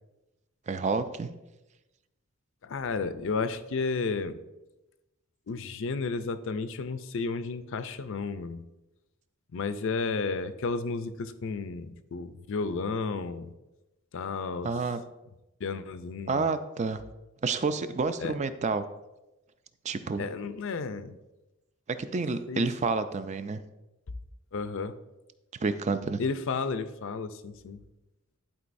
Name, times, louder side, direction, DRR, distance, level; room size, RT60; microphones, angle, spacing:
voice 1, 0.7-1.3 14.6-15.0 16.3-17.0 17.4-18.8 19.8-20.3 22.0-23.6 25.6-26.2, right 4 dB, 30° right, 11 dB, 0.4 m, -29 dB
voice 2, 2.6-4.4 5.5-8.6 9.5-13.5 14.1-14.7 15.6-16.5 18.2-18.3 20.2-21.1 22.5-22.7 24.5-25.0 26.2-27.8, left 4 dB, 60° left, 11 dB, 0.5 m, -32 dB
11.5 x 4.6 x 2.6 m, 1.0 s
head